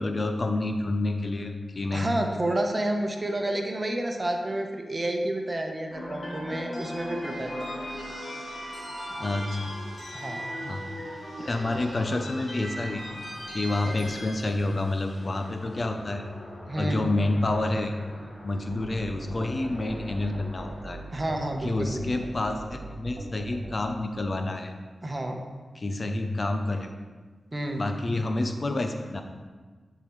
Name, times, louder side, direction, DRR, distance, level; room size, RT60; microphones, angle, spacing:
voice 1, 0.0-2.1 9.2-9.7 10.6-10.9 11.4-13.0 13.5-16.2 16.8-17.9 18.4-21.0 21.6-24.7 25.7-26.9 27.8-29.2, left 2 dB, 45° left, 6 dB, 0.6 m, -28 dB
voice 2, 1.9-7.9 10.1-10.4 16.7-17.1 21.1-22.2 25.0-25.4 27.5-27.8, right 1 dB, 35° right, 3 dB, 1.0 m, -30 dB
sound 1, 5.9-22.1, equal, 65° left, 2.2 m, -40 dB
sound 2, 18.7-23.8, right 2 dB, 65° right, 0.8 m, -40 dB
9.9 x 4.9 x 3.2 m, 1.4 s
cardioid pair, 50°, 0 cm